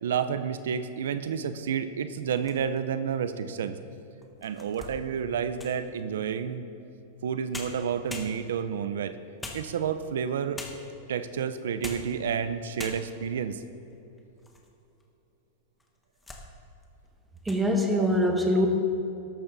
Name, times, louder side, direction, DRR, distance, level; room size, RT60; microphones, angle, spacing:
voice 1, 0.0-3.8 4.4-6.6 7.2-9.2 9.5-10.6 11.1-13.6 17.9-18.1 18.5-18.6, right 7 dB, 85° right, 12 dB, 0.6 m, -30 dB
sound 1, 2.2-3.0 3.6-3.7 4.2-5.9 7.2-7.3 7.5-8.7 9.4-10.1 10.6-11.0 11.6-12.2 12.5-12.6 12.8-13.3 13.9-14.7 15.0-15.1 15.8-16.5 16.8-17.1 17.4-17.7, left 2 dB, 10° left, 1.4 m, -42 dB
voice 2, 17.4-18.7, equal, 10° right, 2 dB, 1.6 m, -23 dB
13.5 x 12.0 x 4.1 m, 2.8 s
supercardioid pair, 145°, 0 cm